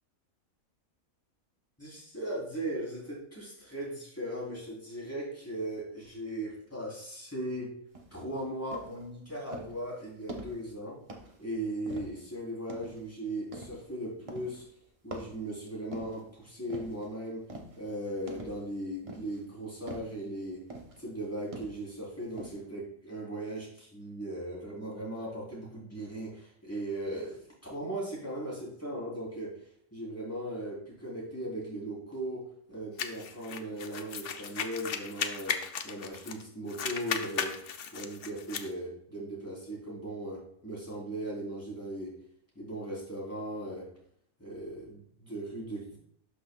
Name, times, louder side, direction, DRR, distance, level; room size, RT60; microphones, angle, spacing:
voice 1, 1.8-7.7 8.1-11.0 11.4-14.6 15.0-17.4 17.7-20.6 21.0-32.4 32.7-35.6 35.8-37.5 37.9-42.1 42.6-43.9 44.4-46.0, right 1 dB, 10° left, -6 dB, 3.5 m, -38 dB
sound 1, 7.9-8.2 8.7-9.0 9.5-9.8 10.3-10.7 11.1-11.4 11.9-12.3 12.7-13.0 13.5-13.9 14.3-14.7 15.1-16.3 16.7-17.1 17.5-17.8 18.3-18.7 19.1-19.4 19.9-20.2 20.7-21.0 21.5-21.9 22.4-22.5, right 1 dB, 25° right, 0.9 m, -44 dB
sound 2, 33.0-36.4 36.7-38.7, left 7 dB, 55° left, 0.7 m, -36 dB
12.0 x 5.9 x 2.3 m, 0.67 s
omnidirectional pair, 1.4 m